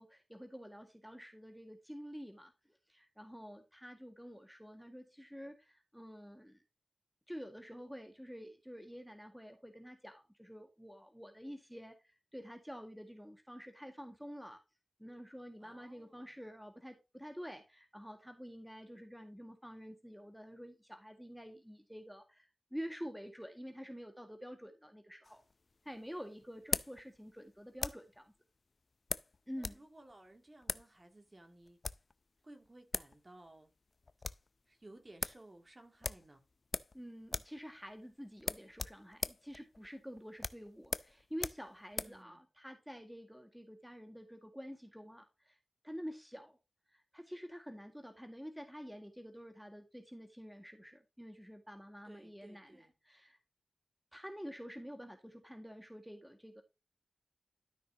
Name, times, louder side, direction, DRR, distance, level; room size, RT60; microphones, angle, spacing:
voice 1, 0.0-2.5 2.9-6.6 7.3-14.6 15.0-25.4 25.8-28.3 29.5-29.8 36.9-45.6 45.8-46.6 46.9-53.4 54.1-56.6, equal, ahead, 1.8 m, -49 dB
voice 2, 15.6-16.3 29.6-31.8 32.4-33.7 34.7-36.4 41.9-42.4 52.0-52.9, right 1 dB, 35° right, 2.5 m, -58 dB
sound 1, 25.2-28.2 29.1-29.8 30.1-30.2 30.6-30.9 31.6-32.1 32.6-32.7 32.9-33.2 33.5-33.6 33.9-34.5 34.8-34.9 35.2-35.4 36.0-37.0 37.2-37.6 37.9-38.0 38.4-42.2, left 3 dB, 50° left, 0.5 m, -40 dB
12.5 x 5.9 x 2.8 m
cardioid pair, 60°, 0 cm